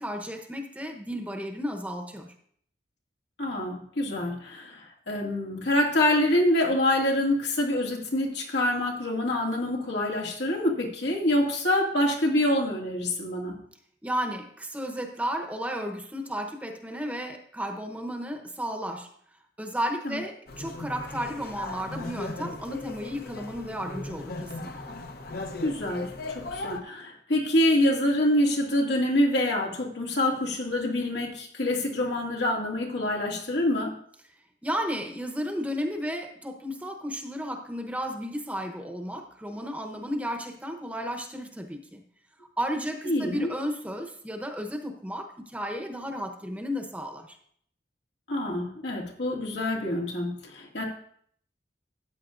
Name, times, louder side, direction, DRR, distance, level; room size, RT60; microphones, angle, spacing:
voice 1, 0.0-2.3 14.0-19.1 19.6-24.7 34.6-42.0 42.6-47.4, equal, 10° right, 4 dB, 0.9 m, -33 dB
voice 2, 3.4-13.6 20.0-20.2 25.6-33.9 43.0-43.5 48.3-50.8, left 1 dB, 85° left, -1 dB, 2.2 m, -26 dB
sound 1, 20.5-26.8, left 2 dB, 60° left, 0.9 m, -37 dB
13.5 x 8.8 x 2.5 m, 0.62 s
head